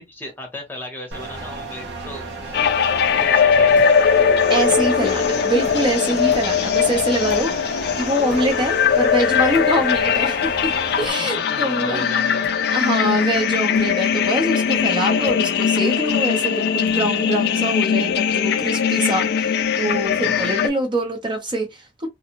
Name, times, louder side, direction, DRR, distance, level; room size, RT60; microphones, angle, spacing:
voice 1, 0.0-3.9 11.2-12.4 20.2-20.5, left 1 dB, 10° left, 1.0 m, -37 dB
sound 1, 1.1-11.1, right 3 dB, 90° right, 0.9 m, -33 dB
sound 2, 2.5-20.7, left 7 dB, 65° left, 0.4 m, -20 dB
sound 3, 3.7-4.0 4.6-5.1 5.6-6.0 6.3-6.5 7.3-7.5 8.3-8.5 9.5-9.7 11.0-11.2 12.4-12.6 13.7-13.8 15.3-15.4 16.9-17.0, right 2 dB, 50° right, 1.0 m, -42 dB
voice 2, 4.5-7.5 7.9-10.7 11.0-12.2 12.7-22.1, right 1 dB, 30° right, 0.7 m, -24 dB
2.5 x 2.3 x 2.9 m
head